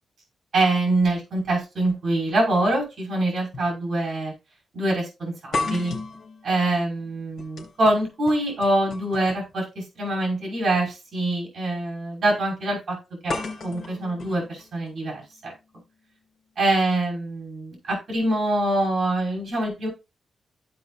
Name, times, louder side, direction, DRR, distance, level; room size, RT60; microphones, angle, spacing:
voice 1, 0.5-4.3 4.7-6.0 6.4-13.0 13.2-13.4 13.6-15.5 16.6-19.9, right 2 dB, 45° right, -1 dB, 5.5 m, -24 dB
sound 1, 3.5-3.7 4.1-4.2 5.5-9.6 10.7-10.9 13.3-15.3, left 3 dB, 60° left, 3.3 m, -34 dB
14.5 x 5.3 x 2.5 m, 0.27 s
wide cardioid pair, 165°, 0 cm